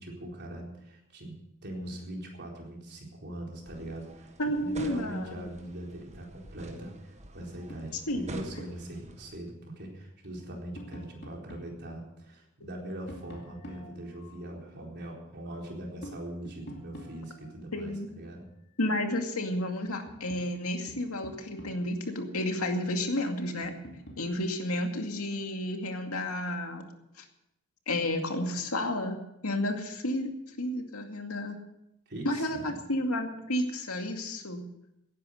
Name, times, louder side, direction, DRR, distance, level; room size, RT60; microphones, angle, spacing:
voice 1, 0.0-1.4 1.6-4.3 4.6-18.5 32.1-32.8, right 1 dB, 50° right, 0 dB, 4.2 m, -41 dB
sound 1, 3.6-9.4, right 1 dB, 30° right, 1.5 m, -46 dB
voice 2, 4.4-5.4 8.1-8.2 17.7-18.1 18.8-23.7 24.2-26.8 27.2-27.3 27.9-29.2 29.4-30.3 30.6-31.6 32.2-34.6, left 1 dB, 80° left, 4 dB, 2.3 m, -31 dB
Tap, 7.7-8.9 10.2-11.8 13.1-14.5 16.0-17.5 19.4-19.5 19.8-22.0 23.6-24.3, equal, 50° left, 2.7 m, -48 dB
17.0 x 10.5 x 6.6 m, 0.82 s
head